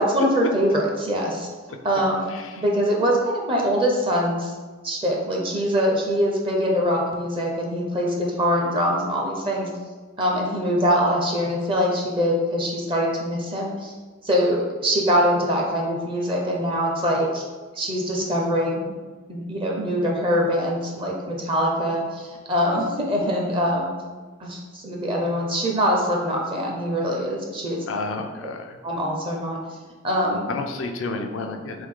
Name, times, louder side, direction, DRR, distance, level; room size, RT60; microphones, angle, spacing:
voice 1, 0.0-1.5 1.8-2.3 2.6-4.5 4.8-9.7 10.2-13.9 14.2-17.4 17.8-18.9 19.3-23.9 24.4-27.8 28.8-29.6 30.0-30.4, equal, 25° right, -1 dB, 0.6 m, -23 dB
voice 2, 27.9-28.8 30.5-31.9, left 3 dB, 85° left, 4 dB, 0.4 m, -30 dB
3.5 x 3.1 x 3.6 m, 1.4 s
head